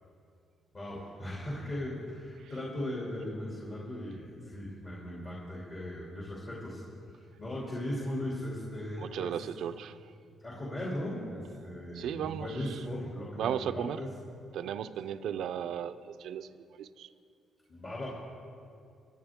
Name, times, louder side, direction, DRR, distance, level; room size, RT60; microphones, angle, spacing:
voice 1, 0.7-6.8 7.1-9.4 10.4-14.1 17.7-18.1, left 1 dB, 40° left, -5 dB, 2.8 m, -38 dB
voice 2, 9.0-10.1 11.9-12.8 13.4-14.0 14.5-16.5 16.8-17.1, right 9 dB, 75° right, 11 dB, 0.5 m, -36 dB
24.5 x 8.8 x 3.7 m, 2.4 s
cardioid pair, 90°, 0 cm